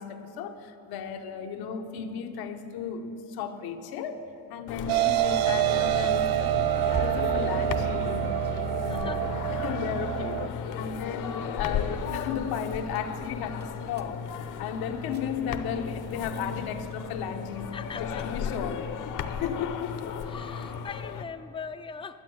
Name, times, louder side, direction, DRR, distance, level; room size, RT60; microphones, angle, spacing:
voice 1, 0.0-14.2 14.6-18.9 19.3-20.2 20.6-20.9, left 7 dB, 80° left, 7 dB, 1.0 m, -35 dB
sound 1, 4.0-10.6 11.0-20.8, right 4 dB, 30° right, 0.6 m, -48 dB
sound 2, 4.7-21.2, left 7 dB, 55° left, 0.8 m, -35 dB
sound 3, 4.9-10.5, right 13 dB, 75° right, 0.5 m, -27 dB
voice 2, 8.9-9.2 17.7-18.3 20.3-22.2, left 6 dB, 15° left, 10 dB, 0.3 m, -40 dB
11.5 x 8.5 x 7.8 m, 2.7 s
cardioid pair, 135°, 36 cm